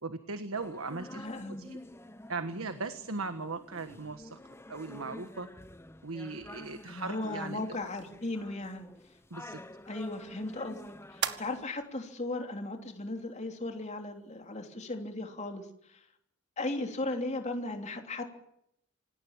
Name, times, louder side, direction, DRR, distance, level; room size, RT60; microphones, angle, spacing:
voice 1, 0.0-1.8 2.3-4.4 4.7-5.5 6.0-7.6 9.3-9.6, right 3 dB, 75° right, 10 dB, 1.4 m, -38 dB
sound 1, 0.5-11.7, left 1 dB, 10° left, 1.0 m, -49 dB
voice 2, 1.1-1.7 6.8-8.9 9.9-10.8 11.1-16.0 16.6-18.2, left 2 dB, 30° left, 4 dB, 3.1 m, -36 dB
sound 2, 7.7-14.7, right 9 dB, 55° right, 1.7 m, -44 dB
27.0 x 18.5 x 7.4 m, 0.75 s
head